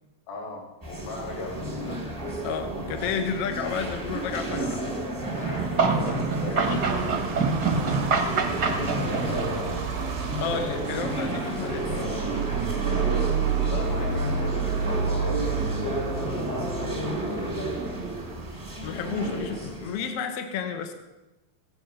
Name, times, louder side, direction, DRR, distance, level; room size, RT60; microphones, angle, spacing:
voice 1, 0.3-2.2 5.4-7.1 7.9-8.2 8.5-10.1 13.6-15.4 16.2-17.5, left 2 dB, 90° left, -2 dB, 4.9 m, -39 dB
sound 1, 0.8-20.1, right 1 dB, 10° right, 1.1 m, -32 dB
voice 2, 2.4-4.8 6.7-6.8 10.4-12.2 18.8-20.9, left 6 dB, 60° left, 6 dB, 1.8 m, -31 dB
sound 2, 5.2-9.9, right 4 dB, 45° right, 1.4 m, -26 dB
sound 3, 6.6-19.4, right 5 dB, 85° right, 3.9 m, -31 dB
15.5 x 12.0 x 5.7 m, 1.0 s
omnidirectional pair, 4.1 m